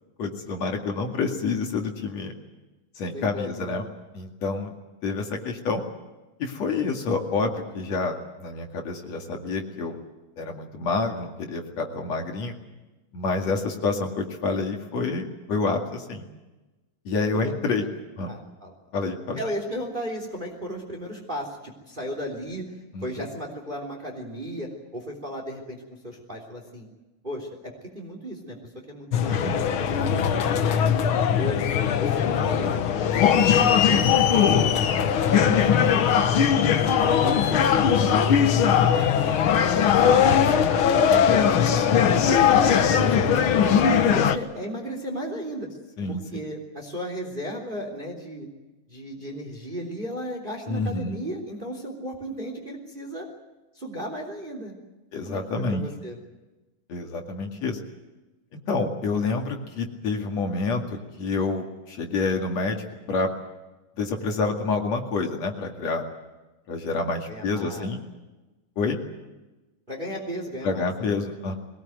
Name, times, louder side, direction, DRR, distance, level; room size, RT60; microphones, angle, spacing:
voice 1, 0.2-2.3 3.0-3.8 4.1-4.7 5.0-5.8 6.4-9.9 10.4-12.5 13.1-16.2 17.0-17.8 18.2-18.3 18.9-19.4 22.9-23.3 29.4-29.6 41.1-41.4 46.0-46.4 50.7-51.1 55.1-55.8 56.9-57.8 58.7-63.3 64.0-66.0 66.7-68.0 68.8-69.0 70.6-71.5, left 3 dB, 55° left, 3 dB, 3.2 m, -28 dB
voice 2, 3.1-3.8 13.4-13.5 17.3-17.9 18.3-18.7 19.4-22.6 23.0-26.9 27.2-28.6 28.9-29.6 29.9-31.6 32.0-34.1 34.3-36.6 37.0-38.8 39.2-40.8 41.3-45.7 46.1-48.5 48.9-53.3 53.7-54.7 55.2-56.2 67.3-67.9 69.9-70.9, equal, 15° right, 3 dB, 3.2 m, -36 dB
sound 1, 29.1-44.4, left 8 dB, 85° left, 1.1 m, -20 dB
22.0 x 19.0 x 9.3 m, 1.1 s
omnidirectional pair, 3.9 m